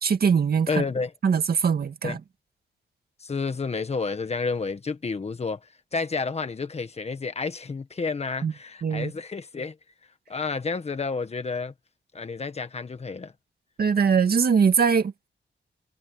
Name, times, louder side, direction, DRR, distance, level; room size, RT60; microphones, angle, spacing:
voice 1, 0.0-0.8 1.2-2.2 8.4-8.5 8.8-9.1 13.8-15.3, right 6 dB, 55° right, 2.0 m, -22 dB
voice 2, 0.7-1.1 2.0-2.2 3.2-5.6 5.9-9.8 10.3-11.7 12.1-13.3, left 4 dB, 35° left, 1.6 m, -30 dB
wide cardioid pair, 155°, 19 cm